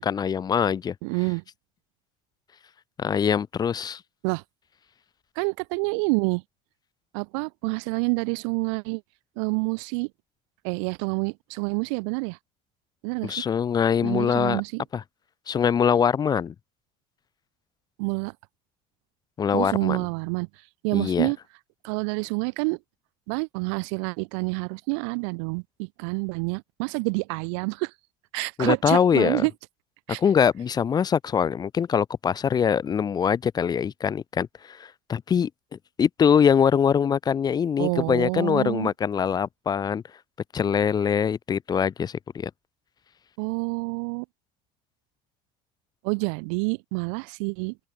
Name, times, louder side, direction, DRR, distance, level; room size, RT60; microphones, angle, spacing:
voice 1, 0.0-0.9 3.0-4.0 13.2-14.6 14.9-15.0 15.5-16.5 19.4-20.0 20.9-21.3 28.6-29.4 30.2-40.0 40.5-42.5, left 7 dB, 25° left, 0.6 m, -23 dB
voice 2, 1.0-1.4 4.2-4.4 5.4-6.4 7.1-9.0 9.4-10.1 10.6-12.4 13.0-13.4 14.0-14.8 18.0-18.3 19.5-20.5 20.8-21.4 21.8-22.8 23.3-27.9 28.3-29.5 30.1-30.2 37.8-38.9 43.4-44.3 46.0-47.8, right 35 dB, 90° right, 0.6 m, -28 dB
open air
cardioid pair, 125°, 15 cm